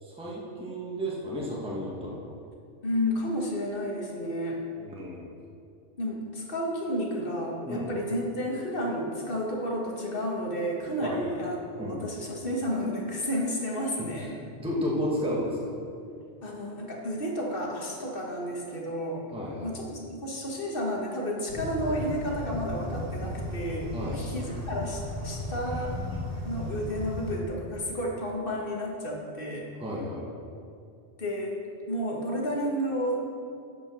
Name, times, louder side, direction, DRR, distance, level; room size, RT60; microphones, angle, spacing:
voice 1, 0.0-2.3 4.8-5.3 7.7-7.9 11.0-11.2 11.8-12.0 14.2-15.7 19.3-19.8 23.9-24.2 29.8-30.2, equal, 5° right, -5 dB, 1.3 m, -33 dB
voice 2, 2.8-4.6 6.0-14.3 16.4-19.3 19.6-26.0 26.4-29.7 31.2-31.5 31.9-33.3, equal, 55° left, -2 dB, 1.6 m, -31 dB
sound 1, 21.5-27.4, left 1 dB, 60° right, 1.6 m, -35 dB
9.3 x 5.9 x 6.0 m, 2.5 s
omnidirectional pair, 1.1 m